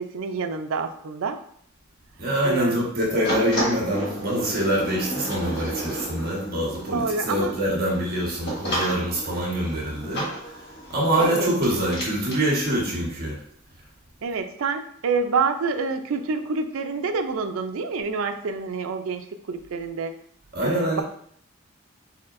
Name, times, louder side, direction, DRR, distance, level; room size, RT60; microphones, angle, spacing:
voice 1, 0.0-1.4 2.4-2.8 6.9-7.5 11.2-11.9 14.2-20.1 20.6-21.0, right 4 dB, 75° right, 7 dB, 0.4 m, -27 dB
voice 2, 2.2-13.4 20.5-21.0, right 1 dB, 50° right, -3 dB, 1.4 m, -25 dB
sound 1, 3.2-12.4, right 1 dB, 55° left, 1.5 m, -32 dB
4.2 x 3.9 x 2.5 m, 0.65 s
head